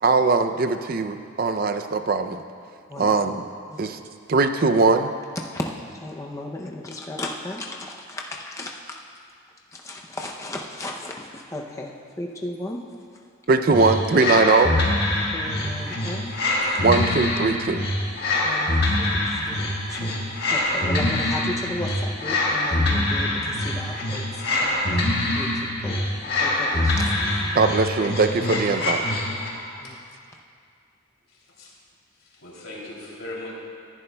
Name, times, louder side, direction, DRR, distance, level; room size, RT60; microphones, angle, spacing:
voice 1, 0.0-2.4 3.0-3.4 3.8-4.0 4.3-5.1 13.5-14.8 16.8-17.8 27.5-29.0, right 3 dB, 45° right, 9 dB, 0.4 m, -20 dB
voice 2, 5.4-9.0 9.7-12.8 15.3-16.4 18.4-20.2 20.5-25.1 25.3-27.2 29.8-30.0, left 1 dB, 15° left, 0 dB, 0.5 m, -35 dB
sound 1, 13.7-29.6, left 1 dB, 50° left, 1.6 m, -24 dB
voice 3, 31.3-31.7 32.1-33.5, left 2 dB, 90° left, -4 dB, 2.9 m, -39 dB
19.5 x 11.0 x 2.2 m, 2.2 s
head